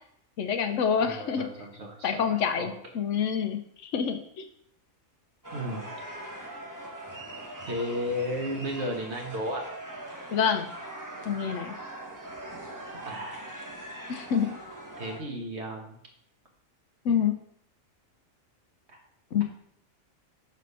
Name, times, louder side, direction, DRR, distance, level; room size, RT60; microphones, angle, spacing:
voice 1, 0.4-1.5 2.0-4.5 10.3-10.7 11.3-11.7 14.1-14.5 17.0-17.3 19.3-19.4, left 7 dB, 70° left, 7 dB, 1.0 m, -27 dB
voice 2, 1.0-2.7 5.5-5.8 7.7-9.6 13.0-13.4 15.0-16.0 18.9-19.0, equal, 55° right, 1 dB, 1.5 m, -34 dB
sound 1, 5.4-15.2, right 1 dB, 15° right, 1.0 m, -41 dB
6.5 x 4.2 x 5.4 m, 0.69 s
omnidirectional pair, 1.4 m